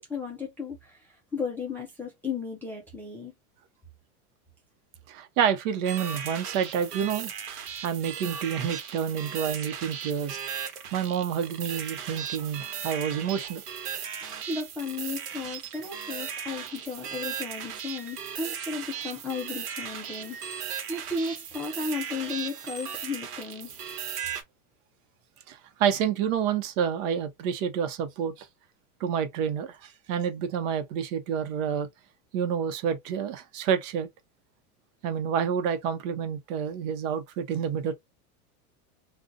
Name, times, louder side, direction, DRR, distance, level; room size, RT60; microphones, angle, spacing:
voice 1, 0.1-1.1 1.3-3.3 14.2-23.7, left 4 dB, 5° left, 0.3 m, -35 dB
voice 2, 5.1-7.3 7.8-10.4 10.9-13.6 25.5-28.5 29.0-31.9 32.3-34.1 35.0-37.9, right 8 dB, 60° right, 0.9 m, -28 dB
sound 1, 5.8-24.4, right 8 dB, 90° right, 1.1 m, -37 dB
2.5 x 2.3 x 3.7 m
supercardioid pair, 140°, 44 cm